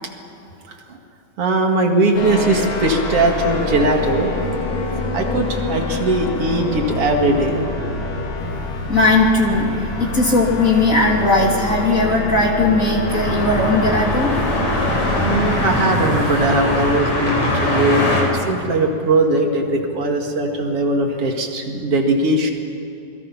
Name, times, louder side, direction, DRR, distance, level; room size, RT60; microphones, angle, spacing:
voice 1, 0.7-1.0 1.4-4.3 5.1-7.6 15.2-22.5, right 2 dB, 50° right, 2 dB, 2.8 m, -19 dB
sound 1, 2.1-15.6, left 2 dB, 85° left, 4.0 m, -26 dB
voice 2, 8.9-14.3, left 2 dB, 25° left, -1 dB, 3.1 m, -17 dB
sound 2, 13.1-18.2, left 1 dB, 55° left, 5.9 m, -21 dB
28.5 x 21.5 x 5.9 m, 2.8 s
omnidirectional pair, 3.7 m